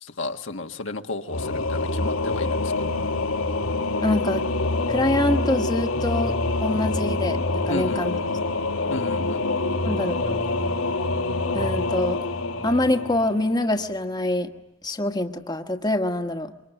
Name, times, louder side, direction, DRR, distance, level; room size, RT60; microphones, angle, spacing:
voice 1, 0.0-2.7 7.7-8.0 8.9-9.5, left 2 dB, 60° left, 5 dB, 1.4 m, -32 dB
Singing / Musical instrument, 1.3-13.9, left 2 dB, 80° left, 2.6 m, -26 dB
voice 2, 4.0-4.4 4.9-6.4 6.6-8.1 9.8-10.4 11.5-12.2 12.6-14.5 14.8-16.5, left 1 dB, 20° left, 5 dB, 1.4 m, -25 dB
26.0 x 24.0 x 8.9 m, 0.94 s
head